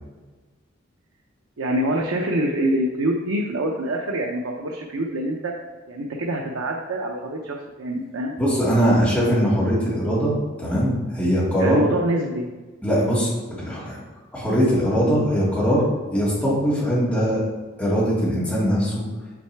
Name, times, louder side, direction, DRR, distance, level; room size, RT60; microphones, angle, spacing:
voice 1, 1.6-5.5 5.9-8.4 11.6-12.5, right 1 dB, 85° right, 0 dB, 0.6 m, -25 dB
voice 2, 8.4-11.8 12.8-14.0 14.3-17.4 17.8-19.0, equal, 5° left, -8 dB, 2.2 m, -21 dB
6.3 x 6.1 x 3.4 m, 1.3 s
head